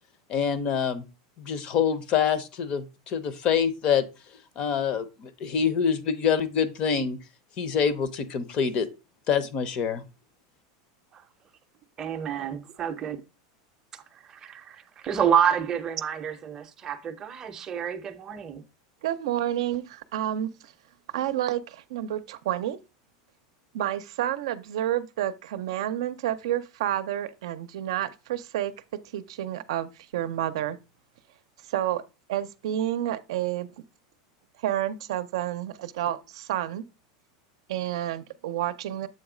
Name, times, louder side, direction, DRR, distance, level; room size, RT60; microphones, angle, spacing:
voice 1, 0.3-1.0 1.4-4.0 4.6-7.2 7.6-8.9 9.3-10.0, left 7 dB, 35° left, 0.6 m, -26 dB
voice 2, 12.0-13.2 14.3-18.6, right 8 dB, 20° right, 0.6 m, -28 dB
voice 3, 19.0-20.7 21.1-22.8 23.7-28.7 29.1-30.8 31.6-32.0 32.3-33.7 34.6-36.8 37.7-39.1, right 12 dB, 75° right, 0.5 m, -29 dB
7.6 x 3.2 x 4.9 m
supercardioid pair, 165°, 3 cm